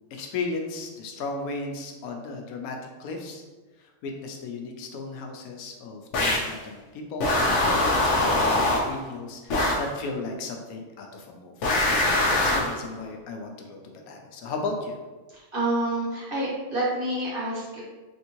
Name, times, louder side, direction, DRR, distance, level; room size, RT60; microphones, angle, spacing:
voice 1, 0.1-3.4 3.8-7.3 7.6-7.8 8.2-11.7 12.2-13.8 14.1-15.0, left 3 dB, 85° left, 2 dB, 1.0 m, -35 dB
sound 1, 6.1-6.6 7.2-9.0 9.5-9.9 11.6-12.8, left 1 dB, 65° left, 0.9 m, -23 dB
voice 2, 15.3-17.8, right 1 dB, 40° right, -8 dB, 1.2 m, -28 dB
3.5 x 2.6 x 2.9 m, 1.2 s
omnidirectional pair, 1.5 m